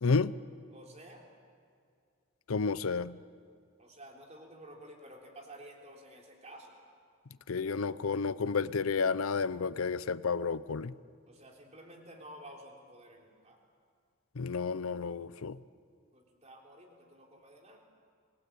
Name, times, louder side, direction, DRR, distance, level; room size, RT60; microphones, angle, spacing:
voice 1, 0.0-0.4 2.5-3.2 7.5-10.9 14.4-15.6, left 4 dB, 75° left, 0.6 m, -31 dB
voice 2, 0.7-1.2 3.8-6.8 11.3-13.6 16.1-17.9, right 1 dB, 30° right, 3.6 m, -52 dB
27.0 x 19.5 x 8.6 m
head